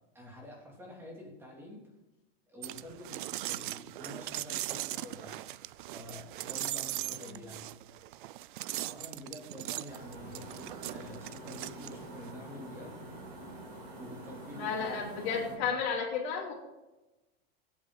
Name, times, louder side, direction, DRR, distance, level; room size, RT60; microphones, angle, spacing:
voice 1, 0.1-1.8 2.5-5.4 5.9-7.7 8.8-10.5 10.9-13.0 13.9-15.5, left 1 dB, 5° right, -2 dB, 2.9 m, -48 dB
sound 1, 2.6-12.3, right 16 dB, 55° right, 0.4 m, -39 dB
sound 2, 9.9-15.6, right 1 dB, 35° right, 4.6 m, -46 dB
voice 2, 14.5-16.5, left 6 dB, 45° left, -5 dB, 3.0 m, -33 dB
23.0 x 8.6 x 4.0 m, 1.1 s
supercardioid pair, 175°, 31 cm